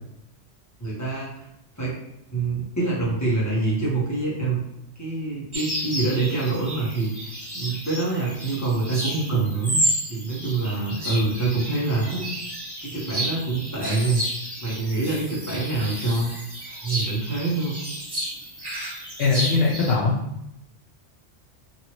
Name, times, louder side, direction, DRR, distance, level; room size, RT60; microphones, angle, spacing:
voice 1, 0.8-1.4 1.8-2.0 2.3-4.6 5.0-9.8 10.1-12.4 12.8-14.2 14.6-16.3 16.7-17.8, right 3 dB, 15° left, -7 dB, 0.9 m, -26 dB
sound 1, 5.5-19.9, equal, 25° right, 0.7 m, -32 dB
voice 2, 19.2-20.2, left 4 dB, 70° left, -5 dB, 0.9 m, -21 dB
2.9 x 2.6 x 2.9 m, 0.83 s
omnidirectional pair, 1.3 m